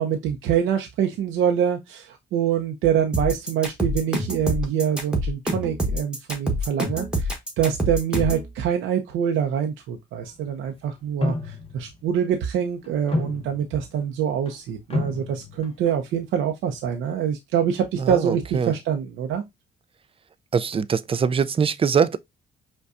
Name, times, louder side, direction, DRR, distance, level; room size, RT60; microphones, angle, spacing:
voice 1, 0.0-7.3 7.6-19.4, right 8 dB, 85° right, 0.6 m, -25 dB
sound 1, 3.1-8.5, equal, 5° right, 1.2 m, -26 dB
sound 2, 11.2-11.9 12.8-13.8 14.5-14.6 14.9-15.9, left 2 dB, 30° left, 0.8 m, -29 dB
voice 2, 18.0-18.7 20.5-22.2, right 6 dB, 30° right, 0.4 m, -22 dB
5.2 x 2.2 x 2.4 m
cardioid pair, 90°, 20 cm